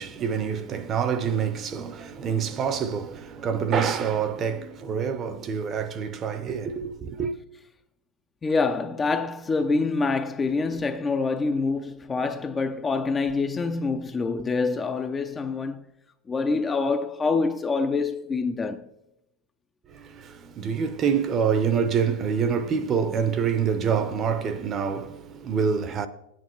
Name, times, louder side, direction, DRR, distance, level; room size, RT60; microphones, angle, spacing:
voice 1, 0.0-7.3 19.9-26.1, right 7 dB, 25° right, 0.7 m, -26 dB
voice 2, 8.4-15.9 16.3-18.9, left 4 dB, 15° left, 0.4 m, -26 dB
16.0 x 9.2 x 3.1 m
supercardioid pair, 145°, 0 cm